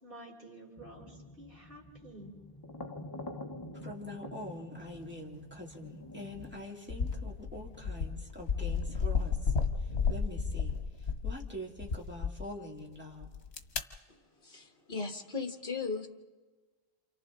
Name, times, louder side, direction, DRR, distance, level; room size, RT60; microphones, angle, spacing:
voice 1, 0.0-2.4, right 1 dB, 55° right, -1 dB, 4.1 m, -50 dB
sound 1, 0.8-6.6, left 1 dB, 25° left, 0.9 m, -47 dB
voice 2, 3.7-9.4 9.8-13.3, left 1 dB, 10° right, -2 dB, 2.4 m, -45 dB
sound 2, 6.3-6.5 6.9-11.4 11.8-12.3 13.2-13.8, left 5 dB, 85° left, 1.5 m, -32 dB
voice 3, 14.4-16.1, left 4 dB, 55° left, 4 dB, 1.8 m, -37 dB
28.5 x 28.5 x 3.8 m, 1.3 s
omnidirectional pair, 1.1 m